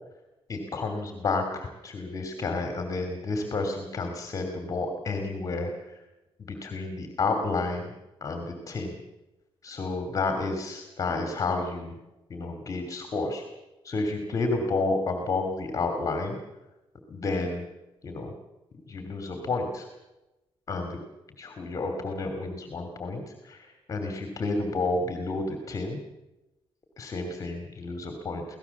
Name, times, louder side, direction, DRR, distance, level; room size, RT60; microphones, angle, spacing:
voice 1, 0.5-6.0 6.5-7.9 8.2-9.0 9.6-12.0 12.3-13.4 13.8-16.4 17.1-17.6 18.0-18.3 18.9-19.9 20.7-21.0 21.4-26.0 27.0-28.4, left 3 dB, 35° left, 5 dB, 2.8 m, -30 dB
25.0 x 17.5 x 7.2 m, 0.99 s
cardioid pair, 155°, 10 cm